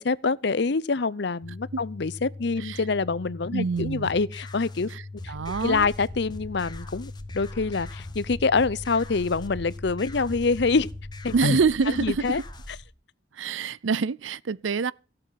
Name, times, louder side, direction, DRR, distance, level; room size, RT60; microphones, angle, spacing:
voice 1, 0.0-4.9 5.2-5.3 5.6-10.9 11.2-11.6 11.9-12.4, left 4 dB, 60° left, 0.7 m, -26 dB
sound 1, 1.4-11.4, left 3 dB, 10° right, 6.5 m, -41 dB
voice 2, 3.5-4.1 4.9-5.0 5.3-5.9 11.3-12.4 13.3-14.9, right 5 dB, 80° right, 0.5 m, -26 dB
sound 2, 3.8-12.8, left 2 dB, 20° left, 1.3 m, -45 dB
sound 3, 5.4-12.8, equal, 25° right, 2.9 m, -44 dB
17.0 x 7.8 x 5.8 m
head